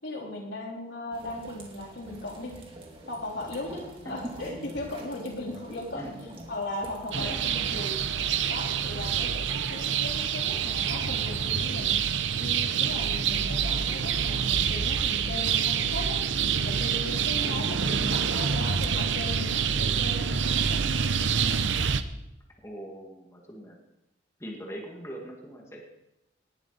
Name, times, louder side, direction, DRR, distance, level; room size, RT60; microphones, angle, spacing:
voice 1, 0.0-2.6 3.1-6.2 6.5-8.0 8.5-12.1 12.3-16.2 16.6-20.8, left 1 dB, 70° left, -2 dB, 3.9 m, -37 dB
sound 1, 1.1-7.3, right 1 dB, 30° right, 2.9 m, -45 dB
voice 2, 5.9-6.3 7.1-7.4 17.4-17.5 22.6-23.8 24.4-25.8, equal, 15° left, -1 dB, 2.1 m, -41 dB
sound 2, 7.1-22.0, right 7 dB, 80° right, 0.8 m, -27 dB
19.0 x 11.0 x 4.2 m, 0.91 s
head